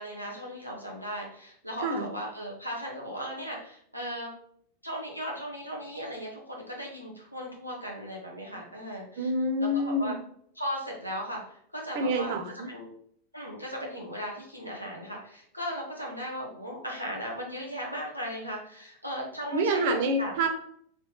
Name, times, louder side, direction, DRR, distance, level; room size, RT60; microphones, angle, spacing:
voice 1, 0.0-4.3 4.8-9.3 9.6-10.2 10.6-12.4 12.7-12.9 13.3-20.3, equal, 90° left, -2 dB, 1.1 m, -37 dB
voice 2, 9.2-10.2 11.9-12.7 19.5-20.5, right 1 dB, 50° right, 5 dB, 0.8 m, -27 dB
3.9 x 3.1 x 3.9 m, 0.66 s
figure-of-eight pair, 90°, 0 cm